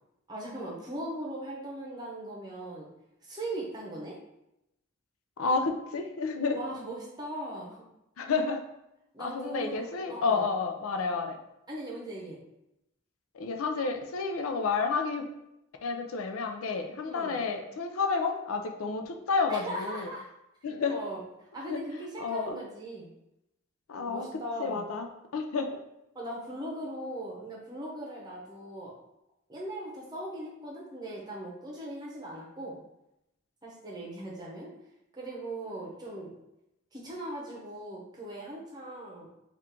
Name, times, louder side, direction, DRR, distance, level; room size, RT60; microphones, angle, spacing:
voice 1, 0.3-2.9 3.2-4.2 6.5-7.8 9.1-10.4 11.7-12.4 17.0-17.4 19.5-20.2 20.9-21.2 21.5-23.1 24.0-24.8 26.1-28.9 29.5-32.8 33.6-34.7 35.1-36.3 36.9-39.3, right 1 dB, 20° right, -4 dB, 0.7 m, -39 dB
voice 2, 5.4-6.6 8.2-8.6 9.2-11.4 13.3-15.3 15.8-20.1 20.6-21.0 21.7-21.8 22.2-22.6 23.9-24.3 24.6-25.7, left 4 dB, 85° left, 5 dB, 0.4 m, -30 dB
3.6 x 2.5 x 4.3 m, 0.87 s
head